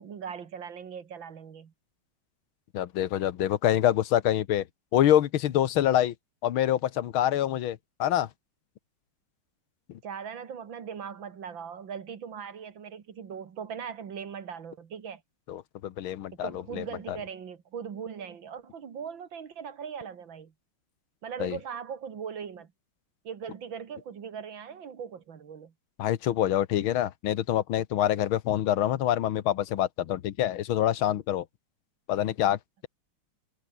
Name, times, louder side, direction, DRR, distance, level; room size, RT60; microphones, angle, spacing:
voice 1, 0.0-1.7 10.0-15.2 16.3-20.5 21.2-22.7 23.2-25.7, right 7 dB, 70° right, 2.5 m, -39 dB
voice 2, 2.7-4.7 4.9-6.1 6.4-8.3 9.9-10.0 15.5-17.2 21.4-21.6 26.0-31.5 32.1-32.9, left 11 dB, 80° left, 1.9 m, -26 dB
omnidirectional pair, 2.2 m